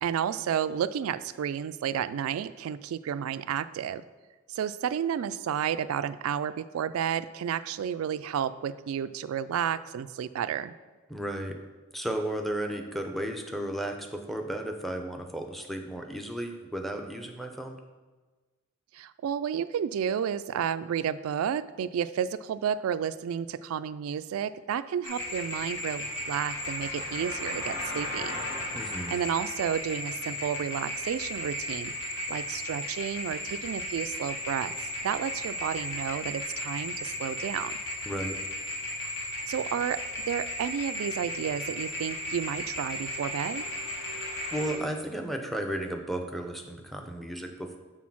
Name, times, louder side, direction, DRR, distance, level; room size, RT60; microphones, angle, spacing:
voice 1, 0.0-4.0 4.5-10.7 18.9-28.4 29.1-31.9 32.3-34.7 35.0-37.8 39.5-43.6, right 8 dB, 75° right, 15 dB, 0.3 m, -31 dB
voice 2, 11.1-11.6 11.9-17.8 28.7-29.1 38.1-38.4 44.0-47.8, right 1 dB, ahead, 4 dB, 0.6 m, -34 dB
sound 1, 25.0-44.7, left 1 dB, 65° left, 1.4 m, -35 dB
6.3 x 3.9 x 6.0 m, 1.3 s
head